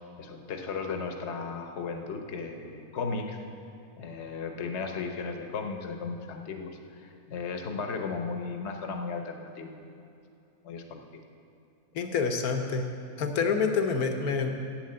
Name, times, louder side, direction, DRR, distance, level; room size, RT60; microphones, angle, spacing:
voice 1, 0.2-3.4 4.0-9.9 10.6-11.2, left 4 dB, 50° left, 4 dB, 1.2 m, -35 dB
voice 2, 11.9-12.9 13.2-14.5, left 5 dB, 75° left, 5 dB, 1.5 m, -27 dB
10.5 x 8.8 x 7.7 m, 2.7 s
omnidirectional pair, 1.6 m